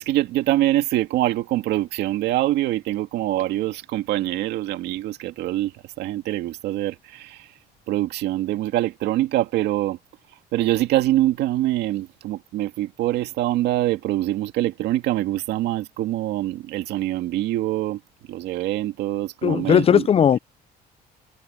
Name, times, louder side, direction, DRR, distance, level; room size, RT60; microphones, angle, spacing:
voice 1, 0.0-5.7 6.0-7.5 7.9-10.0 10.5-18.0 18.3-20.0, right 15 dB, 80° right, 2.2 m, -24 dB
voice 2, 19.4-20.4, left 8 dB, 35° left, 0.5 m, -17 dB
cardioid pair, 110°, 17 cm